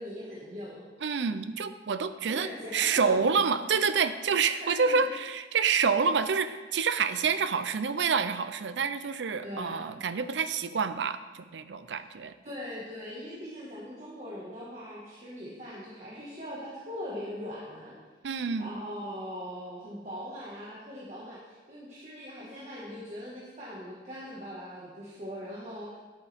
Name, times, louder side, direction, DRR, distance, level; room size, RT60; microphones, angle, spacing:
voice 1, 0.0-0.9 2.3-3.2 4.6-5.0 9.4-9.8 11.8-12.0 12.4-17.9 18.6-26.0, equal, 40° right, -7 dB, 1.7 m, -40 dB
voice 2, 1.0-12.3 18.2-18.7, right 5 dB, 85° right, 11 dB, 0.5 m, -28 dB
10.5 x 8.3 x 3.5 m, 1.3 s
head